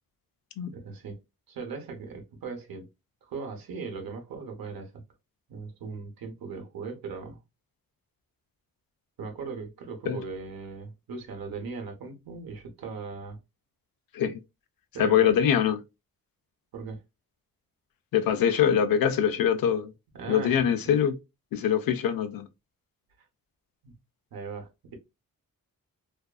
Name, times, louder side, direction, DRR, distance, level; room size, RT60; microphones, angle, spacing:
voice 1, 0.7-1.2 1.5-2.9 3.2-5.0 5.5-7.4 9.2-13.4 14.9-15.3 16.7-17.0 20.1-20.7 23.8-23.9 24.3-25.0, right 4 dB, 80° right, 0.8 m, -38 dB
voice 2, 15.0-15.8 18.1-19.9 20.3-21.1 21.5-22.5, left 9 dB, 80° left, 0.5 m, -23 dB
2.5 x 2.3 x 2.2 m
cardioid pair, 90°, 35 cm